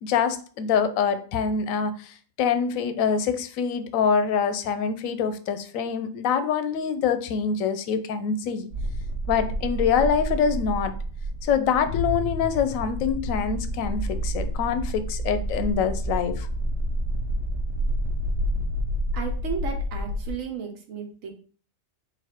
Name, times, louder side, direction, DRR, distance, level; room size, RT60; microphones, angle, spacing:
voice 1, 0.0-8.7 9.3-10.9 11.4-16.5, left 6 dB, 85° left, 11 dB, 1.0 m, -25 dB
sound 1, 8.7-20.3, right 1 dB, 65° right, 1.0 m, -29 dB
Boom, 11.9-14.8, left 4 dB, 60° left, 0.8 m, -34 dB
voice 2, 19.1-21.3, right 6 dB, 80° right, 3 dB, 1.2 m, -34 dB
4.1 x 2.5 x 4.3 m, 0.42 s
omnidirectional pair, 1.4 m